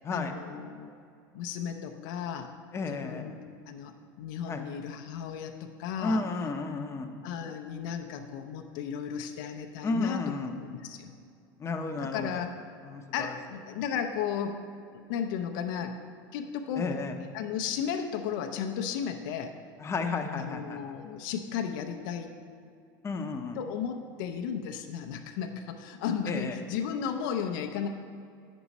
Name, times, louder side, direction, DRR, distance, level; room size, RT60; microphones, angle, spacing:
voice 1, 0.1-0.9 1.3-2.5 2.9-6.2 7.2-10.2 10.5-11.1 12.0-12.5 13.1-14.6 14.9-16.0 16.3-16.9 17.3-19.5 20.3-22.3 23.6-27.9, left 8 dB, 70° left, 5 dB, 0.6 m, -34 dB
voice 2, 2.7-3.3 4.5-4.6 6.0-7.1 9.8-10.5 11.6-12.4 12.8-13.3 16.8-17.1 19.8-20.8 23.0-23.6 26.3-26.6, left 3 dB, 25° left, 4 dB, 0.7 m, -32 dB
7.8 x 6.2 x 4.1 m, 2.4 s
hypercardioid pair, 100°, 11 cm